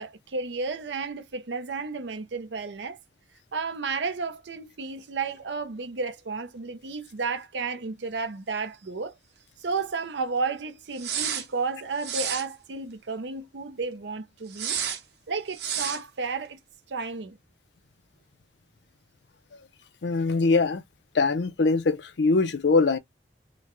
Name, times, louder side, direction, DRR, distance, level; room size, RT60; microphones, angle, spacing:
voice 1, 0.0-3.0 3.5-9.2 9.6-14.8 15.3-16.6 16.9-17.4, right 4 dB, 90° right, 0.6 m, -32 dB
sound 1, 11.0-11.5 12.0-12.5 14.5-15.0 15.5-16.0, right 8 dB, 70° right, 0.9 m, -30 dB
voice 2, 20.0-20.8 21.1-23.0, left 3 dB, 80° left, 0.6 m, -22 dB
3.9 x 2.2 x 3.0 m
head